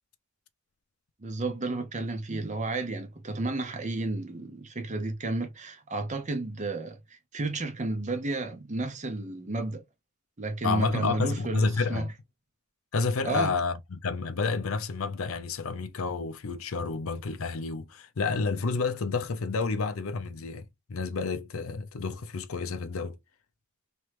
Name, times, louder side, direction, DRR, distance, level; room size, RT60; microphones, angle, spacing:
voice 1, 1.2-9.8 10.4-12.1 13.2-13.5, right 2 dB, 35° right, 0.8 m, -32 dB
voice 2, 10.6-12.1 12.9-23.2, left 4 dB, 75° left, 0.5 m, -30 dB
3.1 x 3.0 x 3.2 m
head